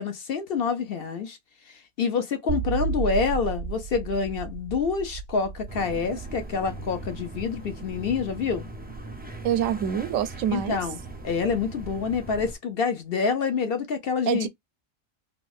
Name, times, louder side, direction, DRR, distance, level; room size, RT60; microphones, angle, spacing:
voice 1, 0.0-1.4 1.7-8.7 10.5-11.0 11.2-14.5, left 5 dB, 55° left, 0.8 m, -27 dB
sound 1, 2.5-9.7, right 6 dB, 60° right, 0.7 m, -34 dB
sound 2, 5.7-12.5, right 2 dB, 15° right, 0.4 m, -40 dB
voice 2, 9.4-10.8 14.3-14.5, right 9 dB, 80° right, 1.0 m, -26 dB
3.5 x 2.3 x 2.3 m
omnidirectional pair, 1.3 m